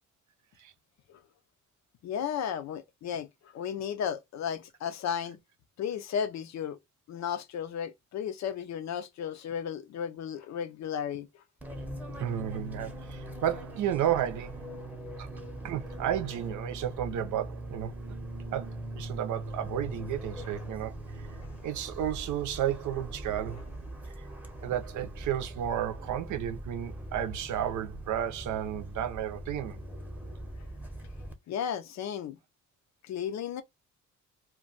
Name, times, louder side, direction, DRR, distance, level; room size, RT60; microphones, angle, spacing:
voice 1, 2.0-5.4 5.8-6.8 7.1-11.3 21.4-21.5 24.6-24.7 31.5-32.4 33.0-33.6, left 8 dB, 65° left, 0.6 m, -34 dB
Fixed-wing aircraft airplane, 11.6-31.3, right 1 dB, 5° right, 0.8 m, -41 dB
voice 2, 12.2-14.6 15.2-15.3 15.6-18.1 18.5-21.3 21.6-23.6 24.6-29.8, right 10 dB, 75° right, 0.6 m, -32 dB
2.2 x 2.2 x 3.8 m
cardioid pair, 90°, 30 cm